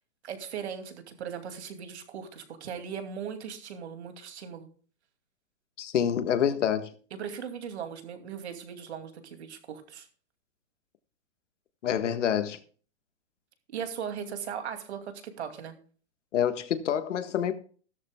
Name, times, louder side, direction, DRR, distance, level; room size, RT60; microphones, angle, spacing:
voice 1, 0.2-4.7 7.1-10.1 13.7-15.8, right 7 dB, 65° right, 2.6 m, -38 dB
voice 2, 5.8-6.9 11.8-12.6 16.3-17.5, left 9 dB, 80° left, 1.6 m, -27 dB
15.0 x 13.0 x 2.3 m
hypercardioid pair, 175°, 36 cm